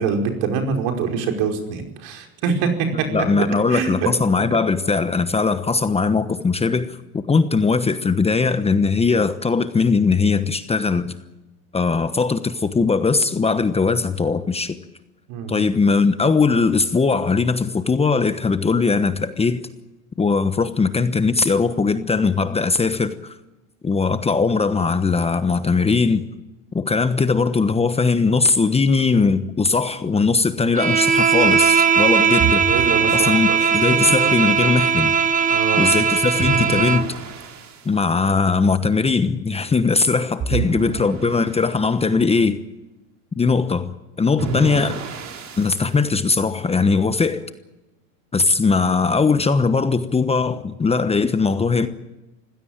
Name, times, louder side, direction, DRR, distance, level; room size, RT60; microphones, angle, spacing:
voice 1, 0.0-2.7 3.0-3.1 3.7-4.1 15.3-15.6 32.7-33.6 35.5-35.9 40.5-41.4, right 6 dB, 55° right, 5.1 m, -25 dB
voice 2, 3.1-11.1 11.7-14.8 15.5-19.6 20.2-23.3 23.8-26.3 26.7-32.8 33.1-35.1 35.7-37.1 37.8-42.6 43.4-45.0 45.6-47.4 48.3-51.9, left 4 dB, 15° left, 1.1 m, -20 dB
Bowed string instrument, 30.7-37.1, right 6 dB, 20° right, 1.5 m, -18 dB
sound 1, 32.4-33.8 36.4-37.9 40.4-41.8 44.4-45.9, right 5 dB, 40° right, 4.4 m, -29 dB
25.0 x 16.5 x 8.9 m
supercardioid pair, 110°, 43 cm